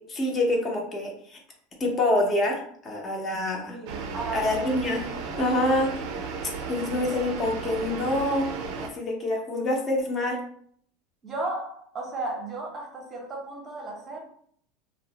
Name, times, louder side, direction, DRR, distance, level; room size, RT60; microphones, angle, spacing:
voice 1, 0.1-1.4 1.8-3.8 4.3-5.0 5.4-5.9 6.7-8.5 8.8-10.4, left 1 dB, 25° left, 0.6 m, -26 dB
voice 2, 3.7-4.7 6.8-7.0 11.2-14.2, right 2 dB, 25° right, 0.7 m, -35 dB
sound 1, 3.9-8.9, right 4 dB, 55° right, 0.4 m, -34 dB
2.8 x 2.0 x 2.8 m
supercardioid pair, 150°, 0 cm